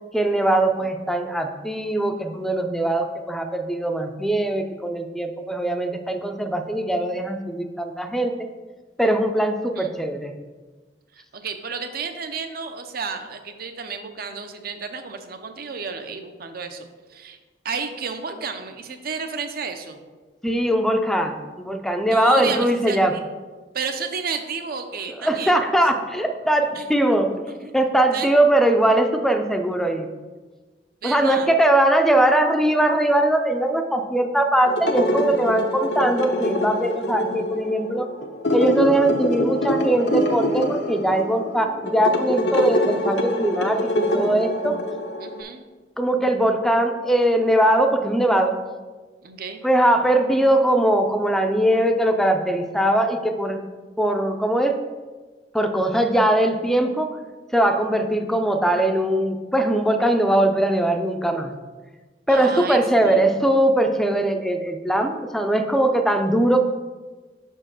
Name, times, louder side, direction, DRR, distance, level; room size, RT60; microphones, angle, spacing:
voice 1, 0.1-8.3 9.0-10.3 20.4-23.1 25.2-27.3 27.7-30.1 31.0-38.1 38.5-44.8 46.0-48.5 49.6-53.6 54.0-54.8 55.5-57.1 57.5-61.5 62.3-66.6, right 1 dB, ahead, 5 dB, 0.5 m, -21 dB
voice 2, 11.1-17.4 17.6-20.0 22.1-23.2 23.7-25.6 26.7-26.9 27.5-27.8 28.1-28.3 31.0-31.5 45.2-45.7 49.2-49.6 62.3-63.3, right 5 dB, 55° right, 7 dB, 0.7 m, -32 dB
sound 1, 34.7-45.4, left 1 dB, 75° left, 0.8 m, -25 dB
5.7 x 4.5 x 6.0 m, 1.3 s
head